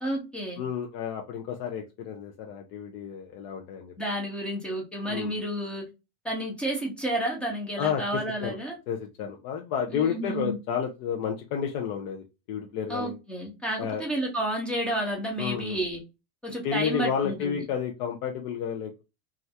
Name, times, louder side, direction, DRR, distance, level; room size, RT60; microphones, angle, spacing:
voice 1, 0.0-0.6 4.0-5.8 6.2-8.7 9.9-10.6 12.9-16.0 16.4-17.6, right 1 dB, 5° left, 0.6 m, -31 dB
voice 2, 0.6-3.9 5.1-5.4 7.8-8.6 8.9-13.2 13.8-14.0 15.4-15.8 16.6-19.0, left 8 dB, 40° left, 0.4 m, -31 dB
3.2 x 2.4 x 2.7 m
cardioid pair, 175°, 30 cm